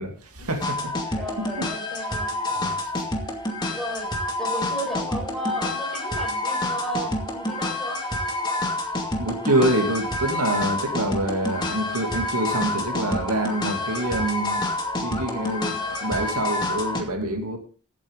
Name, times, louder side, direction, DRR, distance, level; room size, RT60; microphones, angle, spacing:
voice 1, 0.0-1.7 2.5-2.7 9.2-14.6 15.0-17.6, right 1 dB, 85° right, 2.7 m, -26 dB
sound 1, 0.6-17.0, left 1 dB, 20° left, 2.2 m, -28 dB
voice 2, 1.1-2.4 3.7-8.0, equal, ahead, 5.5 m, -33 dB
16.0 x 9.0 x 3.8 m
head